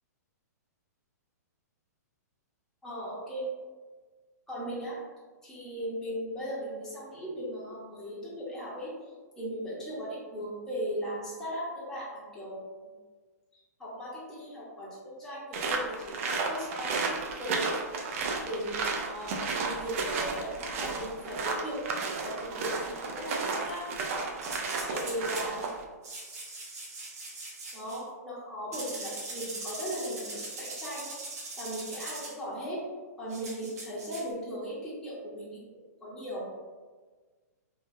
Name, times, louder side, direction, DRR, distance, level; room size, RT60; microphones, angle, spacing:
voice 1, 2.8-3.4 4.5-5.0 5.4-8.9 9.4-12.6 13.5-17.8 18.1-23.9 24.9-25.7 27.7-31.1 31.6-32.8 33.2-35.6 36.0-36.5, equal, 5° left, -9 dB, 0.7 m, -37 dB
sound 1, 15.5-25.8, right 4 dB, 50° right, 0.4 m, -33 dB
sound 2, 24.4-25.5 26.0-28.0 28.7-32.3 33.3-34.3, right 2 dB, 65° right, 0.9 m, -41 dB
2.9 x 2.2 x 2.5 m, 1.4 s
hypercardioid pair, 130°, 9 cm